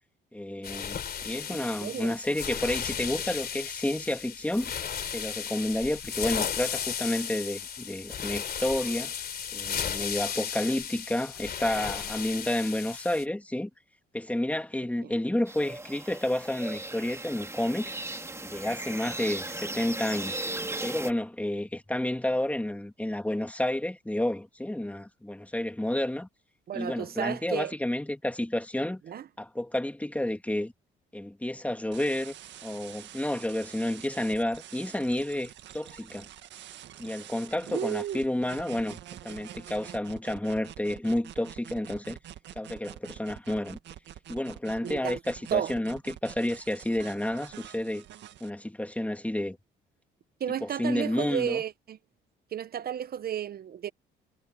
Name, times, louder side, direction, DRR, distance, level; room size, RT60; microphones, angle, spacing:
voice 1, 0.3-4.7 5.1-9.1 9.5-13.7 14.1-17.9 18.4-20.3 20.8-26.3 26.7-29.0 29.4-30.7 31.1-32.3 32.6-36.3 37.0-42.2 42.6-43.8 44.3-48.0 48.4-49.6 50.6-51.6, left 1 dB, 5° left, 2.8 m, -30 dB
sound 1, 0.6-13.2, left 8 dB, 50° left, 3.1 m, -35 dB
voice 2, 1.5-2.1 15.0-15.1 26.7-27.7 29.1-29.2 37.7-38.2 44.8-45.2 45.5-45.7 50.4-52.0 52.5-53.9, right 10 dB, 50° right, 0.9 m, -32 dB
sound 2, 15.5-21.1, right 2 dB, 15° right, 2.2 m, -37 dB
sound 3, 31.9-48.5, right 12 dB, 65° right, 1.8 m, -46 dB
supercardioid pair, 65°, 20 cm